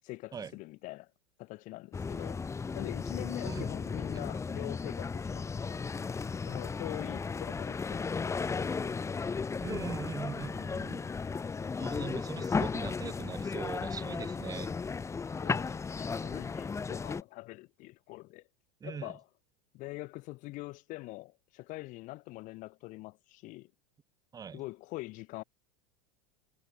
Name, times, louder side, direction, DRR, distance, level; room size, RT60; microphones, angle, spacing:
voice 1, 0.0-1.1 1.4-2.4 2.7-5.8 6.5-8.7 15.4-18.5 18.8-19.2 19.7-23.7 24.5-25.4, left 21 dB, 50° left, 4.3 m, -44 dB
sound 1, 1.9-17.2, left 5 dB, 15° left, 5.1 m, -35 dB
voice 2, 9.6-11.1 11.8-14.7 18.8-19.1 24.3-24.6, right 7 dB, 20° right, 2.3 m, -41 dB
supercardioid pair, 120°, 17 cm